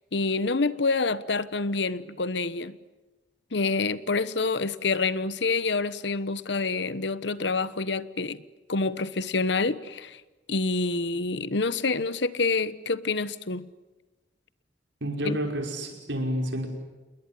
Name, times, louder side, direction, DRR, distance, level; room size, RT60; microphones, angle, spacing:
voice 1, 0.1-2.8 3.5-8.4 8.7-10.2 10.5-13.7 15.2-15.4, left 3 dB, 65° left, 1.1 m, -27 dB
voice 2, 15.0-16.7, right 1 dB, 80° right, 5.5 m, -29 dB
28.5 x 21.0 x 9.9 m
head